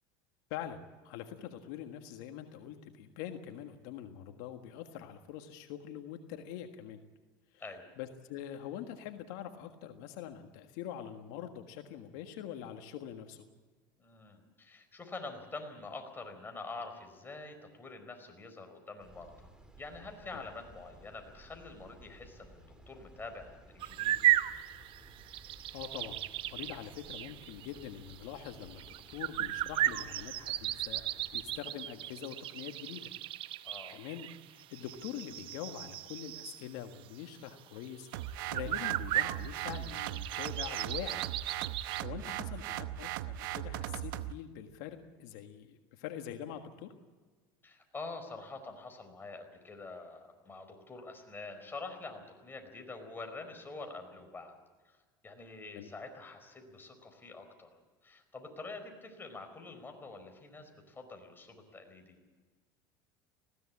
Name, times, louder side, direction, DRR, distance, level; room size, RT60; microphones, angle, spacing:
voice 1, 0.5-7.0 7.5-7.6 8.0-13.5 20.3-20.4 25.7-26.2 26.5-33.1 33.6-41.2 42.0-46.9 55.7-55.9, left 10 dB, 70° left, 6 dB, 1.6 m, -44 dB
voice 2, 14.0-19.5 19.8-24.2 33.6-34.1 42.3-42.7 47.6-54.6 54.8-55.0 55.2-57.7 58.0-62.2, left 3 dB, 20° left, 5 dB, 4.7 m, -46 dB
sound 1, 19.0-31.6, right 1 dB, 5° right, 3.1 m, -57 dB
sound 2, 23.8-36.7 37.2-37.3 37.8-37.9 38.1-42.0, right 13 dB, 50° right, 0.9 m, -36 dB
sound 3, 38.1-44.3, right 13 dB, 80° right, 0.9 m, -38 dB
20.0 x 16.5 x 8.5 m, 1.4 s
supercardioid pair, 100°, 11 cm